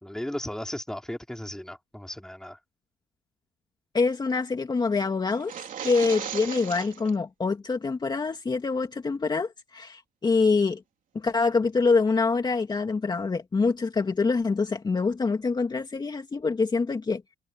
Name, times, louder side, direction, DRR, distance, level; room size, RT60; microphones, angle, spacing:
voice 1, 0.0-2.6, left 1 dB, 5° left, 3.4 m, -36 dB
voice 2, 3.9-5.5 5.8-10.8 11.1-17.2, left 4 dB, 25° left, 2.4 m, -25 dB
Rubble shifting, 5.4-7.1, right 9 dB, 50° right, 3.4 m, -36 dB
cardioid pair, 110°, 17 cm